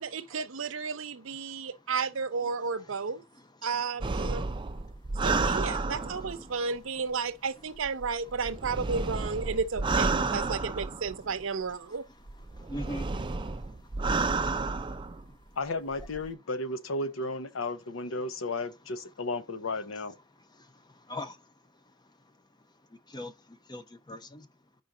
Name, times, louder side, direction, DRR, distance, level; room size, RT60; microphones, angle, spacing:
voice 1, 0.0-3.2 3.6-4.4 5.2-12.0, right 5 dB, 75° right, 0.7 m, -33 dB
voice 2, 1.4-1.9 2.4-2.5 2.8-3.8 4.2-5.3 5.7-7.1 7.6-7.7 8.2-8.6 9.5-9.6 10.4-10.8 11.7-15.4 18.1-18.2 20.4-21.5 21.9-22.4 22.9-24.5, left 1 dB, 20° left, 0.7 m, -47 dB
sound 1, 4.0-6.5 7.8-11.4 12.3-15.2 15.9-16.3, right 3 dB, 25° right, 0.4 m, -31 dB
voice 3, 15.6-20.1, left 2 dB, 85° left, 0.8 m, -34 dB
5.1 x 3.9 x 5.7 m
head